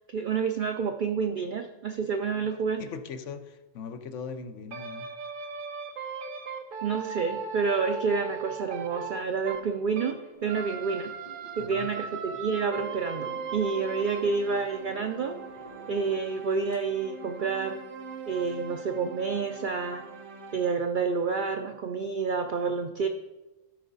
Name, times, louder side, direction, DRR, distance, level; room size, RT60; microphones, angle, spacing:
voice 1, 0.1-2.8 6.8-11.1 11.6-15.4 15.9-17.8 18.3-20.0 20.5-23.1, right 5 dB, 85° right, 6 dB, 0.4 m, -29 dB
voice 2, 2.8-5.1 11.6-11.9, left 5 dB, 65° left, 8 dB, 1.0 m, -40 dB
sound 1, 4.7-10.2 10.5-20.7, right 5 dB, 50° right, 0.7 m, -39 dB
sound 2, 10.3-16.3 16.7-16.8, equal, 45° left, 2.1 m, -50 dB
13.0 x 5.1 x 3.9 m, 1.1 s
omnidirectional pair, 1.5 m